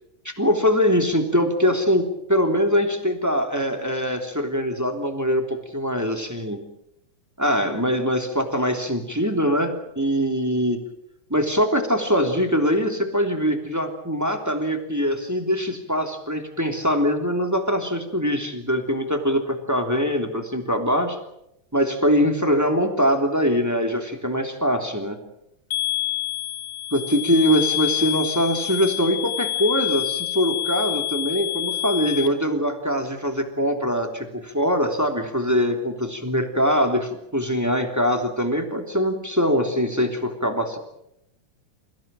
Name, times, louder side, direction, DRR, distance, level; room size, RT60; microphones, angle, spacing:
voice 1, 0.2-2.0 2.3-6.6 7.4-10.8 11.3-21.2 21.7-25.2 26.9-40.8, equal, 5° right, 5 dB, 2.8 m, -23 dB
sound 1, 25.7-32.3, left 14 dB, 65° left, 2.6 m, -27 dB
28.5 x 16.5 x 8.9 m, 0.83 s
omnidirectional pair, 3.5 m